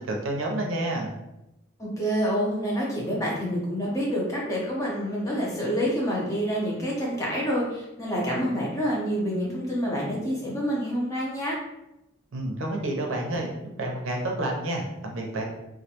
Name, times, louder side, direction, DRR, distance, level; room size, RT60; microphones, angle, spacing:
voice 1, 0.1-1.1 12.3-13.5 13.8-15.4, right 1 dB, 70° right, 1 dB, 0.5 m, -29 dB
voice 2, 1.8-11.6, equal, 15° left, -4 dB, 0.5 m, -27 dB
2.3 x 2.1 x 2.8 m, 0.92 s
head